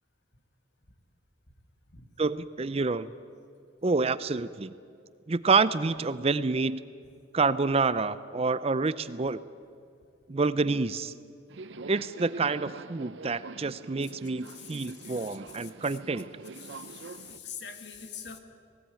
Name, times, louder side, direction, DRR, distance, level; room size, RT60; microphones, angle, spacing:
voice 1, 2.2-3.1 3.8-4.7 5.3-6.8 7.3-9.4 10.3-11.1 11.9-16.3, right 4 dB, 35° right, 16 dB, 0.5 m, -28 dB
Subway metro underground, 11.5-17.4, right 4 dB, 75° right, 0.6 m, -45 dB
voice 2, 14.5-16.0 16.5-18.4, left 7 dB, 65° left, 7 dB, 1.9 m, -45 dB
18.5 x 18.5 x 9.0 m, 2.3 s
head